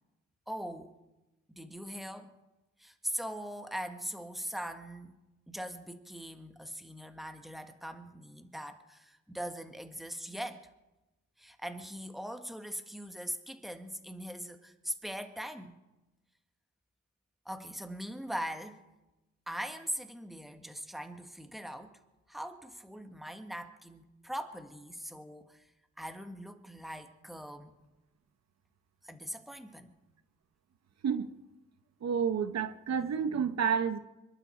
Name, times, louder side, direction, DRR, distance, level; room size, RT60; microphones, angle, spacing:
voice 1, 0.5-0.9 1.5-2.3 2.8-5.1 5.5-10.7 11.4-15.8 17.4-18.8 19.5-22.0 22.3-25.6 26.0-27.7 29.0-29.9, equal, ahead, 1.6 m, -41 dB
voice 2, 32.0-34.0, right 7 dB, 65° right, 1.0 m, -30 dB
26.0 x 12.0 x 4.5 m
cardioid pair, 85°, 29 cm